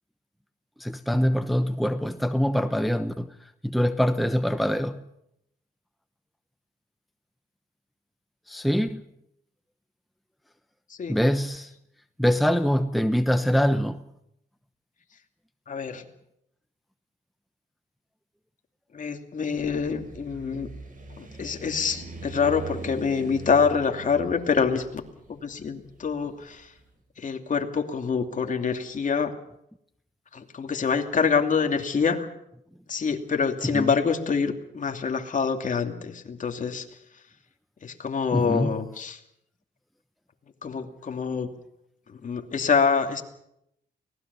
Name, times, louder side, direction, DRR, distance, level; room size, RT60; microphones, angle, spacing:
voice 1, 0.8-3.3 3.6-5.0 8.5-9.0 11.1-11.7 12.2-14.0 33.6-33.9 38.3-38.7, equal, ahead, 1.0 m, -24 dB
voice 2, 15.7-16.0 18.9-20.7 21.2-25.0 25.3-26.7 27.2-29.3 30.3-32.3 32.9-36.8 37.8-39.2 40.6-41.5 42.1-43.2, left 5 dB, 45° left, 2.7 m, -26 dB
sound 1, 19.5-26.6, right 4 dB, 50° right, 7.9 m, -42 dB
24.5 x 19.0 x 7.0 m
cardioid pair, 90°, 18 cm